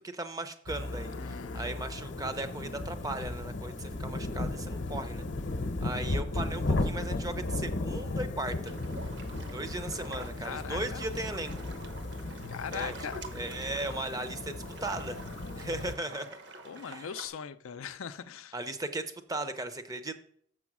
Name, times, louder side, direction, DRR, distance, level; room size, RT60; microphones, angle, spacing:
voice 1, 0.1-5.3 5.8-8.7 9.5-11.6 12.7-12.9 13.3-15.2 15.6-16.3 16.8-17.1 18.5-20.1, right 2 dB, 15° right, 10 dB, 0.6 m, -37 dB
sound 1, 0.7-16.0, left 2 dB, 55° left, 0.8 m, -35 dB
voice 2, 1.0-1.7 10.0-11.0 12.5-13.2 16.6-18.5, left 7 dB, 80° left, 11 dB, 0.5 m, -40 dB
sound 2, 8.6-17.3, right 2 dB, 55° right, 1.0 m, -47 dB
7.1 x 6.2 x 6.0 m, 0.62 s
head